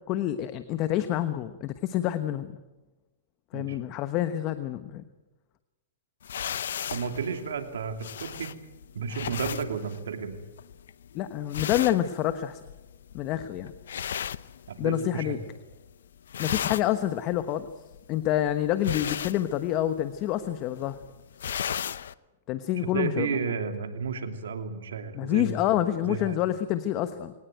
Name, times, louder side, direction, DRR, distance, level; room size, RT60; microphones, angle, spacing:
voice 1, 0.1-2.5 3.5-5.0 11.1-12.6 13.1-13.7 14.8-15.4 16.4-17.7 18.1-21.0 22.5-23.3 25.1-27.3, left 12 dB, 35° left, 11 dB, 1.1 m, -27 dB
sound 1, 6.2-15.2 15.5-22.1, left 9 dB, 85° left, 0.7 m, -36 dB
voice 2, 6.9-8.5 8.9-10.4 14.7-15.4 16.4-16.6 22.9-25.7 26.0-26.4, right 5 dB, 85° right, 6 dB, 2.9 m, -32 dB
22.5 x 18.5 x 9.2 m, 1.1 s
hypercardioid pair, 140°, 0 cm